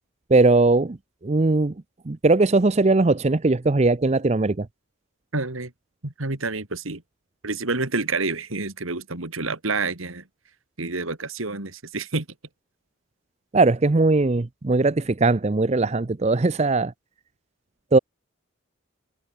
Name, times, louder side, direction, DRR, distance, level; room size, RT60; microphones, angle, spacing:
voice 1, 0.3-1.0 1.2-1.7 2.1-4.7 13.5-16.9 17.9-18.0, right 3 dB, 30° right, 0.5 m, -19 dB
voice 2, 5.3-5.7 6.0-7.0 7.4-10.2 10.8-12.3, right 3 dB, 80° right, 2.7 m, -28 dB
head